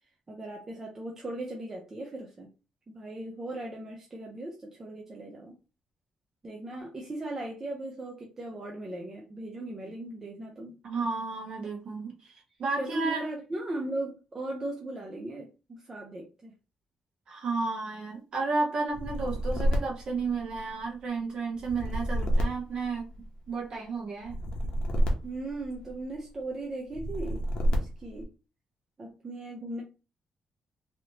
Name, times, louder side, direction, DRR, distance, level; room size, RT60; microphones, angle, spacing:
voice 1, 0.3-2.5 2.9-5.6 6.4-10.7 12.8-16.5 25.2-27.5 27.7-28.3 29.0-29.8, right 1 dB, 20° right, 0 dB, 0.5 m, -37 dB
voice 2, 10.8-12.2 12.6-13.2 17.3-23.1 23.5-24.3, right 4 dB, 45° right, -1 dB, 1.2 m, -32 dB
sound 1, 18.9-20.9 21.6-23.5 24.2-26.1 26.9-28.2, equal, 45° left, 0.8 m, -29 dB
3.2 x 2.7 x 2.8 m, 0.31 s
cardioid pair, 180°, 2 cm